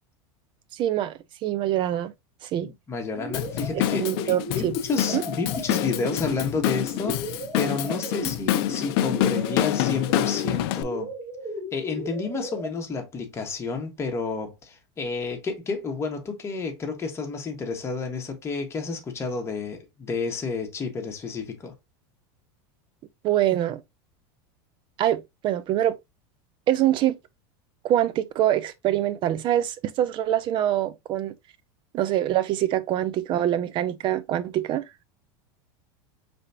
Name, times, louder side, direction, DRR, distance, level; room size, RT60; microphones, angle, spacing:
voice 1, 0.7-2.1 2.4-2.7 3.9-4.8 5.1-5.2 23.2-23.8 25.0-26.0 26.7-27.1 27.8-31.3 31.9-35.0, right 12 dB, 35° right, 0.6 m, -24 dB
voice 2, 2.6-11.1 11.7-21.7, left 4 dB, 20° left, 1.3 m, -30 dB
sound 1, 3.1-12.7, equal, 10° right, 1.2 m, -36 dB
Drum kit / Drum, 3.3-10.8, left 13 dB, 65° left, 0.5 m, -27 dB
4.8 x 3.5 x 2.7 m
supercardioid pair, 140°, 13 cm